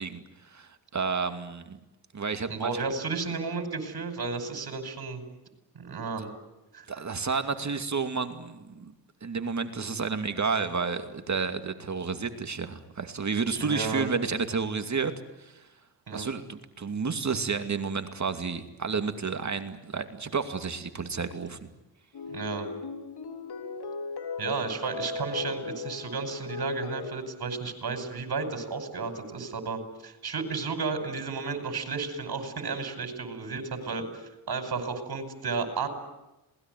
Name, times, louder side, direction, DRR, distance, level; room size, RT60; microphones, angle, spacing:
voice 1, 0.0-1.8 2.1-2.9 6.9-8.9 9.2-15.1 15.4-15.6 16.1-21.7, right 5 dB, 40° right, 8 dB, 2.5 m, -31 dB
voice 2, 2.5-5.2 5.8-6.3 6.7-6.9 13.6-14.1 16.1-16.3 22.3-22.7 24.4-35.9, right 4 dB, 60° right, 6 dB, 5.4 m, -33 dB
sound 1, 22.1-27.1, left 3 dB, 65° left, 4.0 m, -37 dB
27.0 x 20.0 x 9.3 m, 0.98 s
cardioid pair, 70°, 42 cm